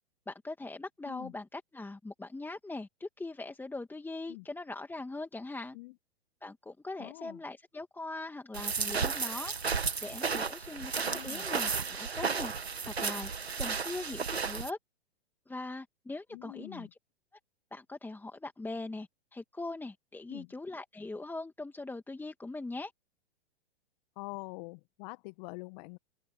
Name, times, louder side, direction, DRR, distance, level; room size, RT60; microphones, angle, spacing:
voice 1, 0.3-5.8 6.4-9.5 10.0-12.5 12.8-13.3 13.6-14.8 15.5-16.9 17.7-22.9, left 2 dB, 5° left, 2.6 m, -41 dB
voice 2, 7.0-7.4 11.0-11.4 16.3-16.9 20.3-20.5 24.2-26.0, left 27 dB, 45° left, 1.7 m, -45 dB
sound 1, 8.5-14.7, right 5 dB, 90° right, 2.2 m, -33 dB
open air
hypercardioid pair, 110°, 31 cm